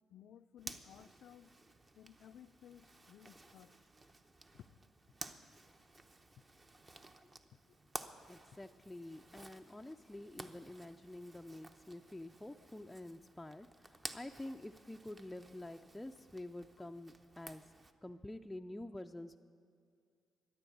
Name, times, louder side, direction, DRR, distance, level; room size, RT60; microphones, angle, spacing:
voice 1, 0.1-1.5 2.0-3.7 4.5-4.7 7.7-7.8 9.4-9.5 16.8-16.9, left 10 dB, 75° left, 15 dB, 0.4 m, -58 dB
Zipper (clothing), 0.6-17.9, right 2 dB, 30° right, 0.9 m, -54 dB
voice 2, 8.3-17.6 18.0-19.4, left 1 dB, 10° left, 3 dB, 0.4 m, -48 dB
13.5 x 10.5 x 8.5 m, 2.4 s
cardioid pair, 90°, 0 cm